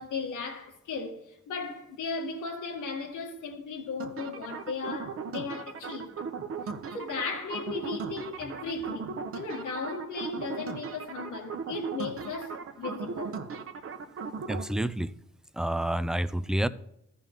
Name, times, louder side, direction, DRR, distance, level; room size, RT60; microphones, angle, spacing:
voice 1, 0.0-6.1 6.9-13.4, left 4 dB, 80° left, 1.8 m, -36 dB
sound 1, 4.0-14.6, right 5 dB, 45° right, 1.0 m, -38 dB
voice 2, 14.5-15.1 15.5-16.7, right 1 dB, ahead, 0.4 m, -28 dB
14.0 x 5.5 x 3.6 m
cardioid pair, 90°, 30 cm